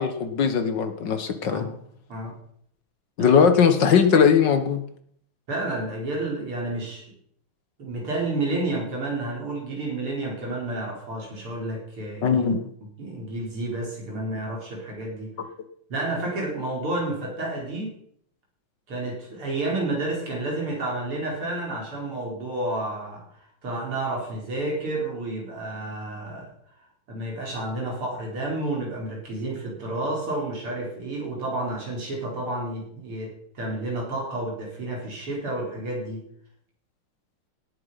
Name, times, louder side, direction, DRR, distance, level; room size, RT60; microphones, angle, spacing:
voice 1, 0.0-1.7 3.2-4.8 12.2-12.6, left 6 dB, 60° left, 9 dB, 1.8 m, -19 dB
voice 2, 1.4-1.7 2.1-2.4 3.2-3.4 5.5-7.1 7.8-12.4 13.0-15.3 15.9-18.0 18.9-23.3 23.6-26.5 27.1-36.2, right 2 dB, 85° right, -1 dB, 5.3 m, -30 dB
17.5 x 8.6 x 5.7 m, 0.66 s
omnidirectional pair, 2.4 m